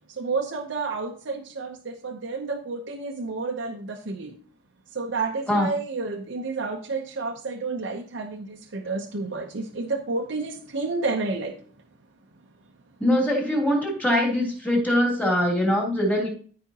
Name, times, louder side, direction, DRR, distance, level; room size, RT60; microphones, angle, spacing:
voice 1, 0.2-1.7 2.0-4.3 5.0-11.5, right 3 dB, 70° right, 1 dB, 0.8 m, -30 dB
voice 2, 13.0-16.3, left 1 dB, 10° left, -2 dB, 3.1 m, -22 dB
14.0 x 5.1 x 2.9 m, 0.43 s
head